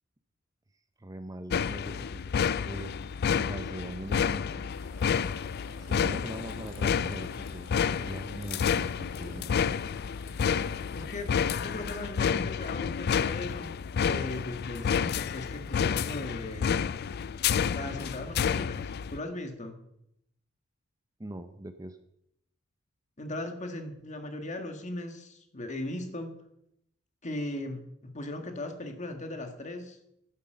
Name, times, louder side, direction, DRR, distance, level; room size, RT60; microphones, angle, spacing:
voice 1, 1.0-3.0 3.5-4.6 5.8-9.5 21.2-22.0, right 1 dB, 20° right, 9 dB, 0.7 m, -42 dB
sound 1, 1.5-19.2, left 7 dB, 50° left, 0.4 m, -30 dB
sound 2, 4.7-12.4, left 3 dB, 80° left, 2.5 m, -51 dB
voice 2, 10.9-16.7 17.7-19.8 23.2-26.3 27.2-30.0, left 1 dB, 35° left, 6 dB, 1.7 m, -38 dB
11.0 x 9.8 x 6.6 m, 0.78 s
head